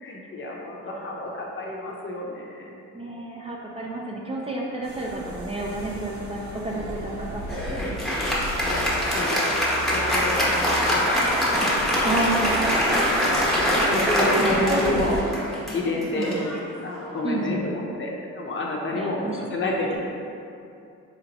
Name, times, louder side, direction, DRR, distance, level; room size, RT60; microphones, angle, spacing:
voice 1, 0.0-2.8 8.5-10.5 10.7-11.2 12.1-12.3 13.9-15.2 15.7-16.3 16.8-20.1, left 2 dB, 40° left, -1 dB, 0.6 m, -30 dB
voice 2, 2.9-8.4 10.5-10.9 12.0-13.0 14.4-15.1 16.2-16.5 17.2-17.9 18.9-19.6, right 2 dB, 20° right, -3 dB, 0.4 m, -31 dB
sound 1, 4.8-15.2, equal, 65° right, 0.7 m, -37 dB
Applause, 7.5-17.3, equal, ahead, 0.9 m, -24 dB
4.3 x 2.9 x 2.7 m, 2.6 s
cardioid pair, 90°, 30 cm